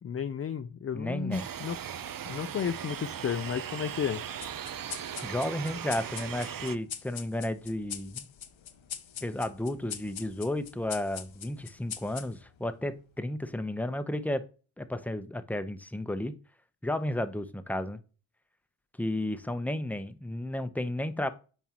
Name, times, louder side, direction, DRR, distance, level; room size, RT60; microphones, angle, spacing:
voice 1, 0.0-1.8 2.3-4.2, left 8 dB, 30° left, 0.4 m, -33 dB
voice 2, 0.9-1.5 5.2-8.3 9.2-14.5 14.8-16.3 16.8-18.0 19.0-21.3, left 1 dB, 5° left, 0.7 m, -33 dB
sound 1, 1.3-6.8, right 9 dB, 45° right, 0.5 m, -38 dB
sound 2, 4.4-13.3, left 9 dB, 65° left, 0.8 m, -43 dB
7.3 x 4.6 x 2.9 m
cardioid pair, 45°, 49 cm